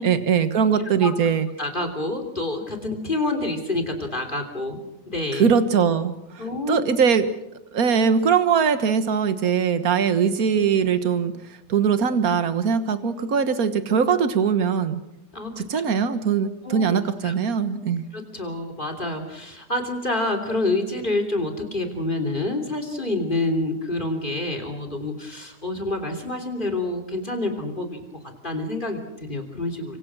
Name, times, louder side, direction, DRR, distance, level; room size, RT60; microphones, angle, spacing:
voice 1, 0.0-1.5 5.3-7.3 7.7-11.3 11.7-15.0 15.6-18.0, right 6 dB, 50° right, 11 dB, 1.0 m, -21 dB
voice 2, 1.6-4.8 5.1-5.5 6.4-6.8 15.3-15.7 16.6-16.9 17.2-17.3 18.1-28.0 28.4-30.0, left 2 dB, 15° left, 5 dB, 3.2 m, -27 dB
26.0 x 25.5 x 6.2 m, 0.85 s
omnidirectional pair, 3.5 m